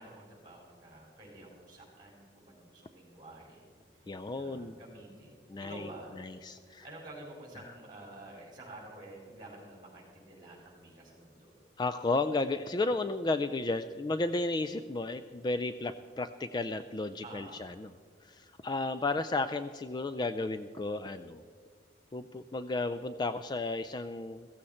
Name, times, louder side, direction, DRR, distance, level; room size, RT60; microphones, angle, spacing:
voice 1, 0.0-3.7 3.9-6.2 6.6-11.5 17.2-17.7, right 1 dB, 25° right, -1 dB, 4.8 m, -50 dB
voice 2, 4.1-4.8 5.5-5.9 6.4-6.8 11.8-17.9 18.3-21.4 22.1-24.5, left 2 dB, 25° left, 11 dB, 0.3 m, -33 dB
15.5 x 15.0 x 4.3 m, 2.1 s
head